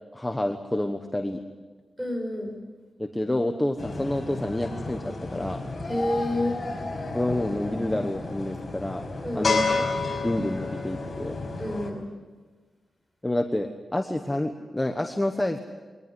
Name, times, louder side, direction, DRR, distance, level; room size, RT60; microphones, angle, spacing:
voice 1, 0.1-1.4 3.0-5.6 7.1-9.1 9.3-9.9 10.2-11.4 13.2-15.6, left 1 dB, 10° left, 5 dB, 1.2 m, -28 dB
voice 2, 2.0-2.6 5.9-6.6 9.2-9.5 11.6-12.1, left 1 dB, 10° right, 3 dB, 6.0 m, -29 dB
sound 1, 3.8-11.9, left 3 dB, 35° left, 5.3 m, -31 dB
23.0 x 19.0 x 9.7 m, 1.4 s
wide cardioid pair, 160°, 0 cm